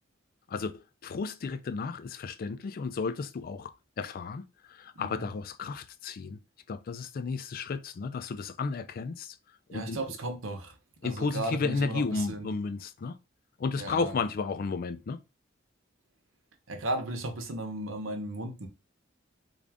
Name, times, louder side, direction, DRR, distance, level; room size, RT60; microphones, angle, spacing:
voice 1, 0.5-6.4 6.7-9.4 9.7-10.0 11.0-13.2 13.6-15.2, left 4 dB, 50° left, 0.3 m, -33 dB
voice 2, 5.0-5.3 9.7-10.7 11.0-12.5 13.7-14.1 16.7-18.7, right 1 dB, 90° right, 0.9 m, -35 dB
3.7 x 2.5 x 3.4 m
head